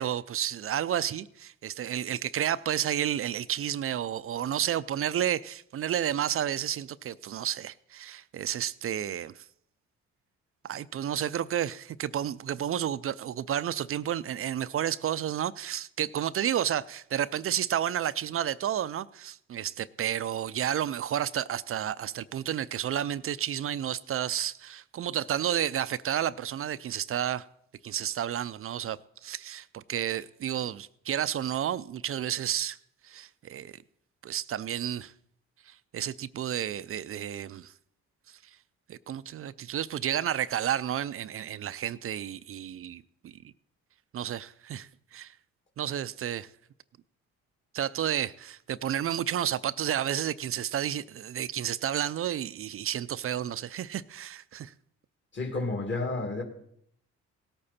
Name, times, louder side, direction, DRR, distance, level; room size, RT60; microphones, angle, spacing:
voice 1, 0.0-9.3 10.6-27.4 27.8-32.8 33.0-33.8 34.2-35.1 35.7-37.7 38.9-43.3 44.1-45.3 45.8-46.5 47.7-54.7, right 10 dB, 45° right, 0.5 m, -31 dB
voice 2, 55.3-56.4, left 3 dB, 40° left, 2.5 m, -31 dB
17.0 x 8.7 x 4.3 m
cardioid pair, 75°, 30 cm